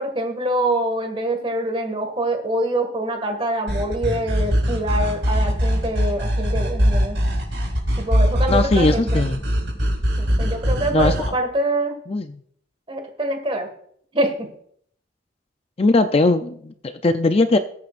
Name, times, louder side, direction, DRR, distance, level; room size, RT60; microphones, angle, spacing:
voice 1, 0.0-7.2 8.0-9.2 10.2-12.0 12.9-13.7 14.1-14.5, right 1 dB, 30° right, 5 dB, 2.0 m, -25 dB
sound 1, 3.7-11.3, equal, 75° right, 5.5 m, -21 dB
voice 2, 8.5-9.4 10.9-11.1 12.1-12.4 15.8-17.6, left 2 dB, 30° left, 9 dB, 0.5 m, -19 dB
20.5 x 8.6 x 2.5 m, 0.65 s
head